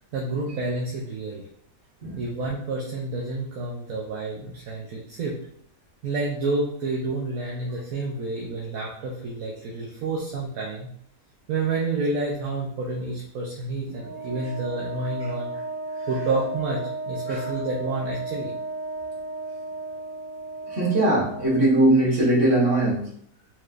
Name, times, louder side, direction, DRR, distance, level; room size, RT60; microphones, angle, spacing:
voice 1, 0.1-1.4 2.2-5.4 6.0-10.9 11.5-15.5 16.1-18.5, right 3 dB, 75° right, -3 dB, 1.2 m, -29 dB
Wind instrument woodwind instrument, 14.0-21.8, right 2 dB, 40° right, 1.0 m, -34 dB
voice 2, 20.7-23.1, right 1 dB, 60° right, -6 dB, 1.9 m, -21 dB
4.5 x 3.2 x 2.5 m, 0.66 s
omnidirectional pair, 1.5 m